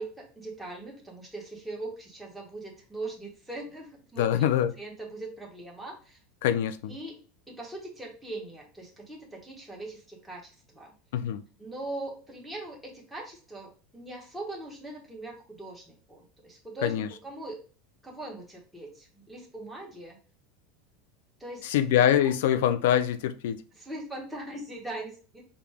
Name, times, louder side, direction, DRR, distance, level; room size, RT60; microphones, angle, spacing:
voice 1, 0.0-4.5 4.8-6.2 6.9-7.2 7.5-10.9 11.6-17.6 18.0-20.2 21.4-21.6 23.8-25.4, right 2 dB, 5° right, 1.2 m, -41 dB
voice 2, 4.2-4.7 6.4-7.0 11.1-11.4 16.8-17.1 21.6-23.6, left 10 dB, 80° left, 0.4 m, -24 dB
5.0 x 2.2 x 3.4 m
supercardioid pair, 135°, 0 cm